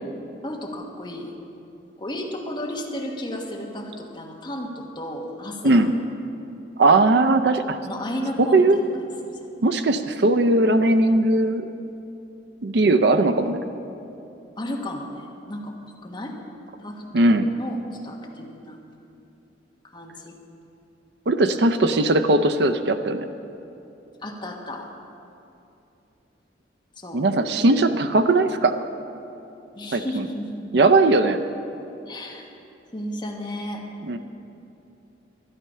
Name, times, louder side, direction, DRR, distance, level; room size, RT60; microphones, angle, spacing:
voice 1, 0.4-1.3 2.0-5.9 7.8-9.4 14.6-15.7 16.0-16.4 16.8-18.8 19.8-20.3 24.2-24.9 27.0-27.2 29.7-30.6 30.9-31.1 31.5-31.6 32.1-32.5 32.9-33.8, left 1 dB, 25° left, 0 dB, 1.3 m, -33 dB
voice 2, 6.8-7.8 8.4-8.8 9.6-11.7 12.6-13.6 17.1-17.5 21.3-23.3 27.1-28.8 29.9-30.2 30.7-31.4 34.0-34.2, right 2 dB, 60° right, 9 dB, 0.5 m, -19 dB
12.5 x 11.5 x 5.5 m, 2.8 s
head